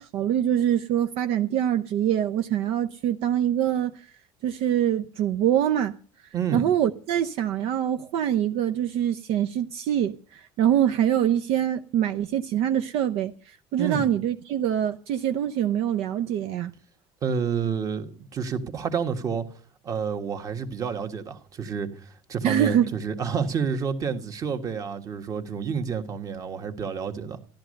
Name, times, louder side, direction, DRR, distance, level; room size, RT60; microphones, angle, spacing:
voice 1, 0.0-4.0 4.4-5.9 6.5-16.7 22.4-22.9, right 10 dB, 60° right, 0.7 m, -24 dB
voice 2, 6.3-6.7 13.8-14.1 17.2-19.4 19.8-27.4, right 6 dB, 30° right, 1.6 m, -29 dB
13.5 x 12.0 x 6.5 m
cardioid pair, 140°, 11 cm